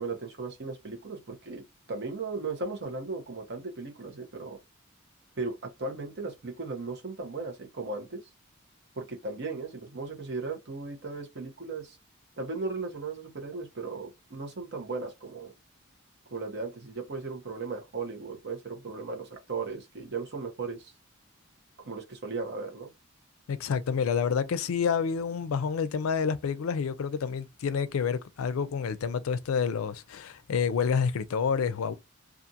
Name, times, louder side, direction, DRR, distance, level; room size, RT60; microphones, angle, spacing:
voice 1, 0.0-1.6 1.9-4.6 5.4-8.2 8.9-12.0 12.4-15.5 16.3-20.9 21.8-22.9, right 3 dB, 55° right, 0.9 m, -36 dB
voice 2, 23.5-31.9, left 6 dB, 80° left, 0.4 m, -28 dB
2.5 x 2.4 x 2.7 m
head